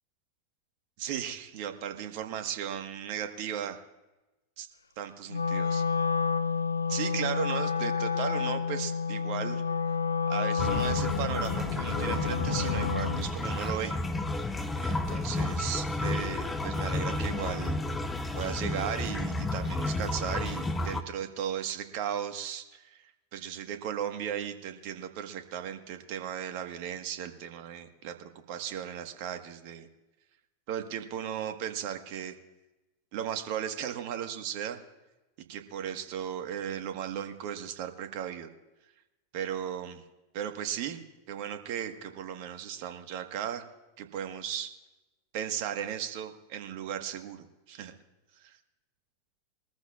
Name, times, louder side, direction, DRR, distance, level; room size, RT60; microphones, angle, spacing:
voice 1, 1.0-3.8 4.6-4.7 5.0-5.8 6.9-9.6 10.3-13.9 14.7-17.8 18.3-23.0 23.3-29.9 30.7-32.3 33.1-34.8 35.5-38.5 39.3-40.0 40.3-41.0 41.3-43.6 44.0-44.7 45.3-47.9 48.4-48.6, right 9 dB, 55° right, 7 dB, 1.4 m, -36 dB
Wind instrument woodwind instrument, 5.3-13.3, left 6 dB, 80° left, 0.5 m, -30 dB
sound 1, 10.6-21.0, left 2 dB, 15° left, 1.0 m, -31 dB
22.5 x 14.0 x 2.4 m, 1.0 s
figure-of-eight pair, 90°, 0 cm